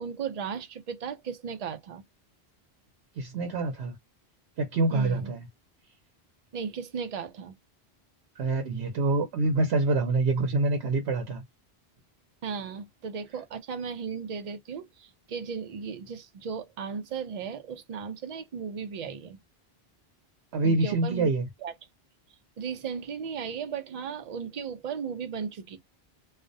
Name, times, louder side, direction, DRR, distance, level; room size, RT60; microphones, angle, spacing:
voice 1, 0.0-2.0 4.9-5.3 6.5-7.6 12.4-19.4 20.6-21.3 21.6-21.7 22.6-25.8, right 6 dB, 50° right, 0.5 m, -36 dB
voice 2, 3.2-4.0 4.6-5.5 8.4-11.4 20.5-21.5, right 3 dB, 80° right, 0.9 m, -26 dB
2.4 x 2.1 x 2.5 m
omnidirectional pair, 1.1 m